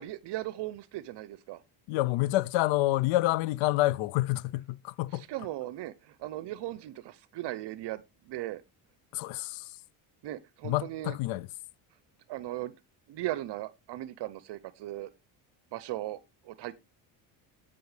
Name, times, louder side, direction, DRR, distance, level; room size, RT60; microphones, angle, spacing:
voice 1, 0.0-1.6 5.1-8.6 10.2-11.2 12.3-12.7 13.1-15.1 15.7-16.2 16.4-16.8, right 15 dB, 60° right, 0.7 m, -37 dB
voice 2, 1.9-5.2 9.1-9.8 10.6-11.5, left 17 dB, 75° left, 0.6 m, -28 dB
15.5 x 5.5 x 3.3 m
supercardioid pair, 90°, 48 cm